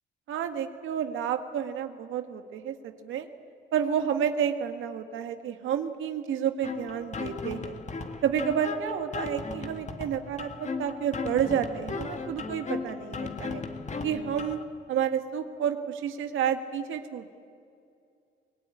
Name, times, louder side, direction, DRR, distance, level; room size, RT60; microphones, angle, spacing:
voice 1, 0.3-3.3 3.7-7.7 8.2-13.6 14.0-14.6 14.9-17.3, right 8 dB, 80° right, 7 dB, 1.8 m, -30 dB
sound 1, 6.6-14.6, left 4 dB, 35° left, 2.0 m, -36 dB
24.5 x 19.0 x 9.9 m, 2.4 s
cardioid pair, 90°, 20 cm